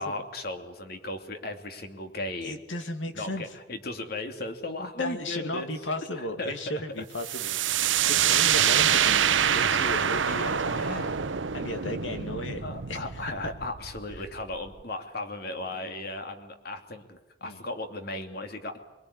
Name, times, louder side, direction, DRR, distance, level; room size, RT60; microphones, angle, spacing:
voice 1, 0.0-2.6 3.1-5.7 6.4-6.5 8.0-8.1 10.6-11.2 11.7-11.8 12.6-18.8, left 2 dB, 55° left, 6 dB, 2.7 m, -36 dB
voice 2, 2.4-3.4 5.0-10.9 11.5-13.0 13.4-13.5 15.7-16.0 17.4-17.6, left 1 dB, 85° left, 7 dB, 2.6 m, -35 dB
sound 1, 7.2-14.8, right 9 dB, 80° right, 0.9 m, -26 dB
24.0 x 23.0 x 9.9 m, 1.0 s
head